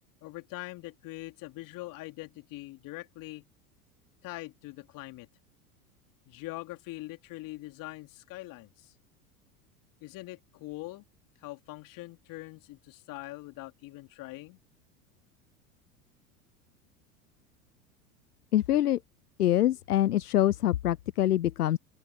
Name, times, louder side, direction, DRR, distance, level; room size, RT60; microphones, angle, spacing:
voice 1, 0.2-3.5 4.2-5.3 6.3-8.9 10.0-11.0 11.4-14.6, left 19 dB, 45° left, 3.4 m, -43 dB
voice 2, 18.5-19.0 19.4-21.8, left 12 dB, 85° left, 0.6 m, -25 dB
open air
figure-of-eight pair, 85°, 45 cm